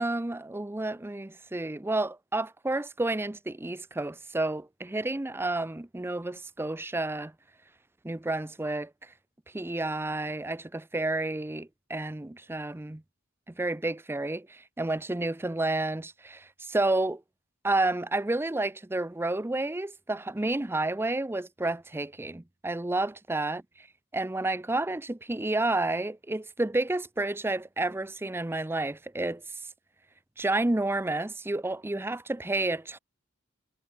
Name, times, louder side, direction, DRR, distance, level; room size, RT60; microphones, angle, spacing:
voice 1, 0.0-7.3 8.0-8.9 9.5-13.0 13.6-17.2 17.6-23.9 24.1-29.4 30.4-33.0, right 2 dB, 10° right, 0.5 m, -30 dB
head